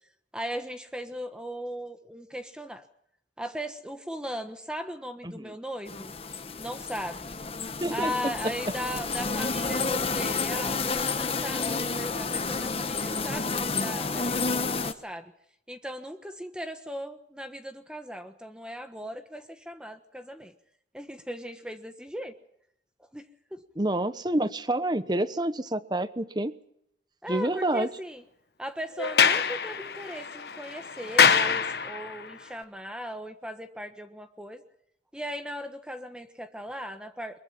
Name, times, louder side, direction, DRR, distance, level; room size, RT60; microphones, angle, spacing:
voice 1, 0.3-2.8 3.4-6.1 6.6-7.3 7.9-15.3 15.7-20.5 20.9-22.3 23.1-23.2 23.5-23.6 27.2-28.2 28.6-34.6 35.1-37.4, equal, 5° right, 7 dB, 1.3 m, -38 dB
sound 1, 5.9-14.9, left 4 dB, 35° left, 1.2 m, -30 dB
voice 2, 7.8-8.3 23.8-26.5 27.3-27.9, right 1 dB, 25° right, 13 dB, 1.0 m, -28 dB
Sliding door, 29.0-32.3, left 6 dB, 65° left, 1.2 m, -24 dB
23.5 x 21.5 x 5.9 m, 0.73 s
head